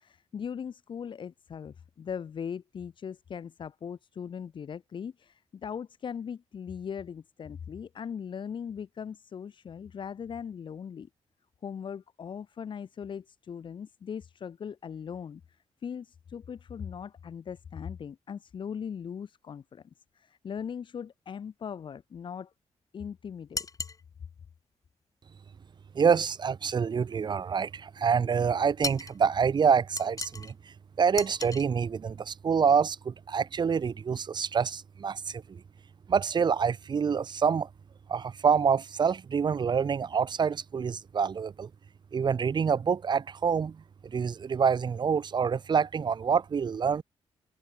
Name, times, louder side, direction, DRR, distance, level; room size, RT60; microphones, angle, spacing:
voice 1, 0.0-11.1 11.6-15.4 15.8-19.8 20.1-22.5 22.9-23.7, left 7 dB, 45° left, 0.4 m, -39 dB
sound 1, 23.5-24.0 28.8-29.2 30.0-30.5 31.2-31.7, left 4 dB, 30° left, 1.2 m, -35 dB
voice 2, 25.9-35.6 36.1-37.7 38.1-41.7 42.1-47.0, right 6 dB, 40° right, 0.5 m, -27 dB
cardioid pair, 90°, 12 cm